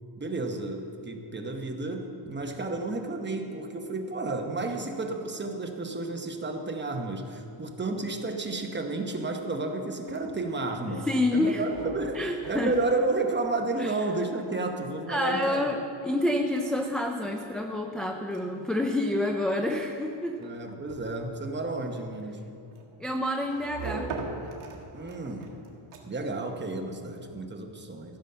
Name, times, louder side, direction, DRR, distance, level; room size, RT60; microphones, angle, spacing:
voice 1, 0.2-15.7 16.3-16.4 20.4-22.4 24.9-25.6 26.0-28.2, right 2 dB, 20° right, 3 dB, 0.9 m, -32 dB
sound 1, 9.9-26.4, right 4 dB, 75° right, 1.7 m, -44 dB
voice 2, 10.8-11.6 12.2-12.7 13.8-13.9 15.1-20.4 23.0-24.1, left 1 dB, ahead, 2 dB, 0.3 m, -28 dB
15.0 x 7.0 x 5.6 m, 2.7 s
wide cardioid pair, 155°, 50 cm